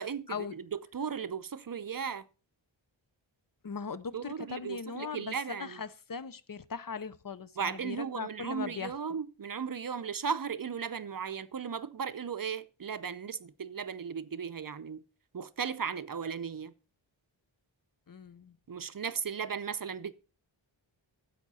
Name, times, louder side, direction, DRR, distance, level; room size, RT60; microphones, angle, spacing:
voice 1, 0.0-2.2 4.1-5.8 7.6-15.0 15.3-16.7 18.7-20.2, right 6 dB, 45° right, 0.6 m, -36 dB
voice 2, 3.6-8.9 18.1-18.6, left 5 dB, 45° left, 0.6 m, -39 dB
11.0 x 7.7 x 4.1 m
wide cardioid pair, 65°, 47 cm